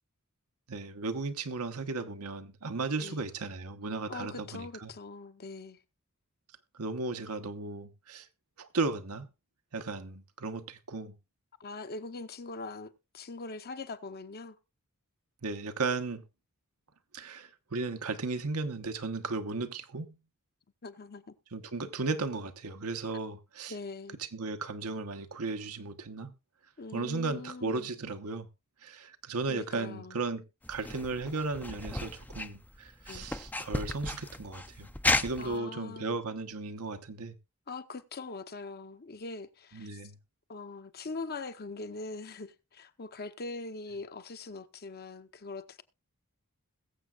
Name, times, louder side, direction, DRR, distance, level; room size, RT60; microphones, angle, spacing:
voice 1, 0.7-4.9 6.7-8.3 8.6-9.3 9.7-11.1 15.4-16.2 17.1-20.2 21.5-23.7 24.2-26.3 26.9-28.5 28.8-34.9 35.1-37.4 39.7-40.2, right 3 dB, 80° right, 1.1 m, -35 dB
voice 2, 4.1-5.8 11.6-14.6 20.8-21.4 23.7-24.2 26.8-27.9 29.5-30.2 33.1-33.3 35.4-36.2 37.7-40.0 40.5-45.8, left 3 dB, 45° left, 0.8 m, -42 dB
sound 1, 30.6-35.6, left 2 dB, 10° left, 0.5 m, -34 dB
21.5 x 7.4 x 2.4 m
head